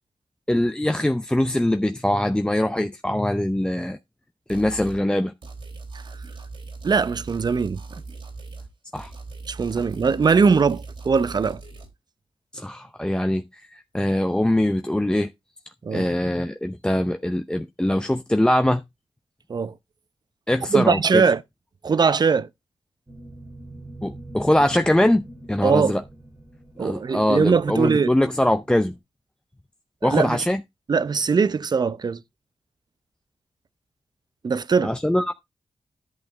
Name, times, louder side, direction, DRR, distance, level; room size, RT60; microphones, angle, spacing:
voice 1, 0.5-4.0 4.5-5.3 8.9-9.1 12.5-13.4 13.7-15.3 15.9-18.8 20.5-21.2 24.0-26.0 26.8-29.0 30.0-30.6 34.8-35.3, left 1 dB, 10° left, 0.6 m, -22 dB
sound 1, 4.5-5.0 5.4-8.7 9.0-11.9, right 3 dB, 75° right, 3.6 m, -39 dB
voice 2, 6.8-7.8 9.5-11.6 15.8-16.0 19.5-19.7 20.7-21.4 21.8-22.5 25.6-25.9 26.8-28.1 30.0-30.4 30.9-32.2 34.4-34.9, right 5 dB, 50° right, 0.7 m, -21 dB
sound 2, 23.1-29.0, right 1 dB, 25° right, 2.3 m, -44 dB
11.0 x 6.0 x 3.4 m
cardioid pair, 60°, 9 cm